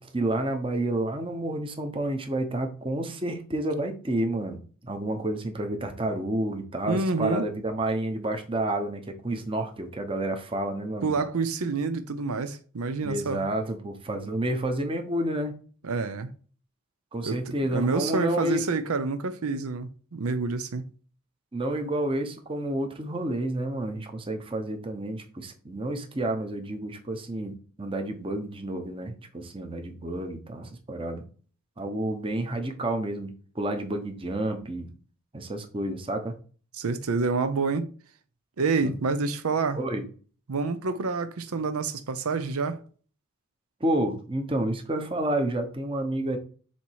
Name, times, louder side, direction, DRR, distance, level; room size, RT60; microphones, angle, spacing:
voice 1, 0.0-11.2 13.0-15.5 17.1-18.6 21.5-31.2 31.8-34.9 35.3-36.3 38.8-38.9 39.7-40.0 43.8-46.4, right 1 dB, 25° right, 0.8 m, -30 dB
voice 2, 6.9-7.5 11.0-13.4 15.8-16.3 17.2-17.4 17.7-20.9 36.8-37.9 38.6-39.8 40.5-42.8, right 4 dB, 90° right, 0.6 m, -28 dB
7.2 x 2.9 x 4.6 m
head